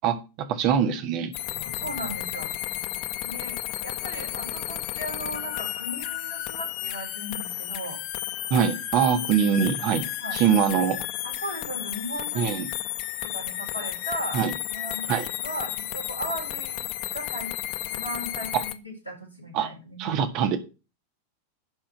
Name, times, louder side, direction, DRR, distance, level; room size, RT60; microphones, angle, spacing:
voice 1, 0.0-1.3 8.5-10.0 10.3-11.0 12.3-12.7 14.3-14.5 15.1-15.3 19.5-19.7 20.0-20.6, right 7 dB, 40° right, 9 dB, 1.5 m, -23 dB
sound 1, 1.3-18.7, left 15 dB, 45° left, 0.8 m, -33 dB
voice 2, 1.6-2.5 3.2-8.0 10.2-10.4 11.2-12.4 13.2-15.1 15.4-16.8 17.1-17.5 17.9-20.3, equal, 90° left, 0 dB, 4.3 m, -36 dB
10.5 x 4.4 x 6.9 m, 0.30 s
figure-of-eight pair, 90°, 0 cm